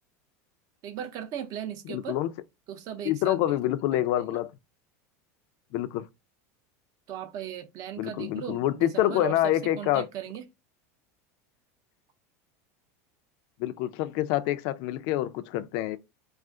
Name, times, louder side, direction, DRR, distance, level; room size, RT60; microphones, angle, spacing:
voice 1, 0.8-2.2 2.7-3.6 3.9-4.4 7.1-10.4, right 10 dB, 45° right, 0.6 m, -38 dB
voice 2, 1.9-2.3 3.0-4.5 5.7-6.1 8.0-10.1 13.6-16.0, left 13 dB, 60° left, 0.4 m, -27 dB
2.4 x 2.4 x 3.6 m
supercardioid pair, 130°, 8 cm